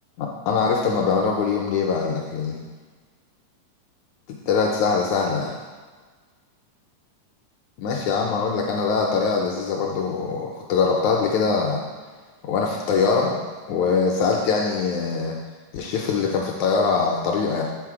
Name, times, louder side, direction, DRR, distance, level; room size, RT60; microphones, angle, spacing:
voice 1, 0.2-2.6 4.3-5.6 7.8-11.8 12.4-13.4 13.7-15.4 15.7-17.6, left 5 dB, 80° left, 0 dB, 1.7 m, -23 dB
7.5 x 3.9 x 4.8 m, 1.4 s
omnidirectional pair, 3.8 m